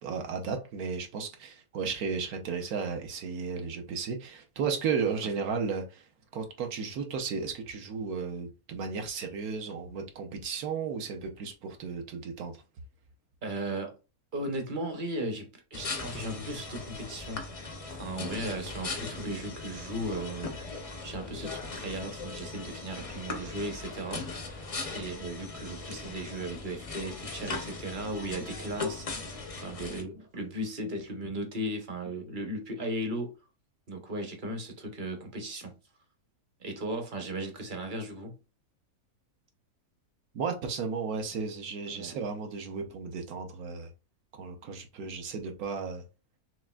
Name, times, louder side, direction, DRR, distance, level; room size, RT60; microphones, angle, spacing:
voice 1, 0.0-6.1 6.3-12.6 40.3-43.9 44.4-46.0, right 5 dB, 75° right, 1.2 m, -34 dB
voice 2, 13.4-13.9 14.3-17.4 17.9-20.6 21.0-24.3 24.9-29.1 29.6-33.3 33.9-35.7 36.6-38.4 41.9-42.2 45.0-45.1, right 1 dB, 40° right, 0.8 m, -36 dB
sound 1, 15.7-30.0, left 3 dB, 55° left, 0.3 m, -39 dB
6.0 x 2.4 x 2.3 m
omnidirectional pair, 1.6 m